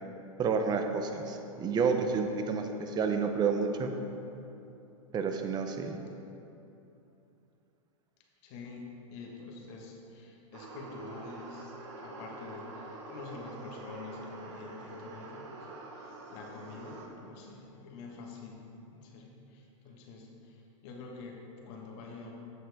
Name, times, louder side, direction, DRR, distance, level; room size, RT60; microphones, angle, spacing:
voice 1, 0.4-3.9 5.1-6.0, right 5 dB, 25° right, 6 dB, 0.7 m, -30 dB
voice 2, 8.4-11.7 12.0-15.5 15.9-18.7 18.9-22.3, left 4 dB, 50° left, 0 dB, 1.5 m, -46 dB
sound 1, 10.5-17.1, right 3 dB, 60° right, 1.2 m, -46 dB
8.3 x 7.4 x 3.5 m, 2.8 s
hypercardioid pair, 115°, 17 cm